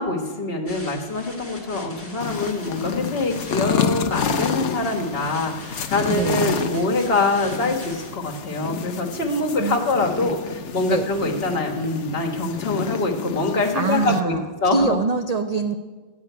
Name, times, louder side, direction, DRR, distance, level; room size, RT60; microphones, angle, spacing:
voice 1, 0.0-15.0, left 2 dB, 50° left, 0 dB, 1.6 m, -24 dB
sound 1, 0.7-8.1, left 1 dB, 10° left, 1.3 m, -41 dB
sound 2, 2.2-14.2, left 7 dB, 70° left, 1.0 m, -29 dB
voice 2, 6.1-6.6 9.6-9.8 10.2-10.4 10.9-11.1 13.7-15.8, right 4 dB, 75° right, 7 dB, 0.3 m, -24 dB
13.5 x 5.1 x 9.2 m, 1.4 s
omnidirectional pair, 1.3 m